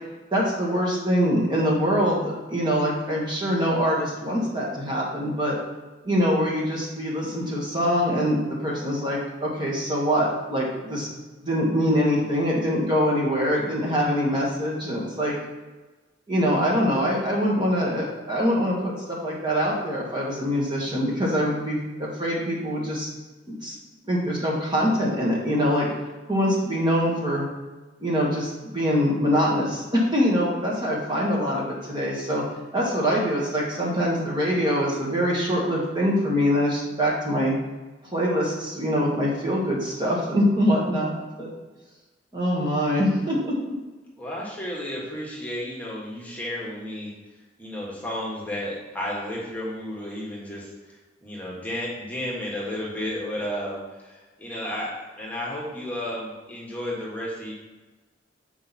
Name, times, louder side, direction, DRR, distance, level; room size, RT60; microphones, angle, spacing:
voice 1, 0.3-5.6 6.0-11.1 11.4-15.3 16.3-23.1 23.5-23.7 24.0-25.9 26.3-27.5 28.0-32.4 32.7-37.5 38.1-41.1 41.4-41.5 42.3-43.5, equal, 25° right, -4 dB, 1.6 m, -24 dB
voice 2, 44.2-47.1 47.6-50.7 51.2-57.5, left 1 dB, 10° left, -5 dB, 1.6 m, -32 dB
7.6 x 4.7 x 4.2 m, 1.2 s
head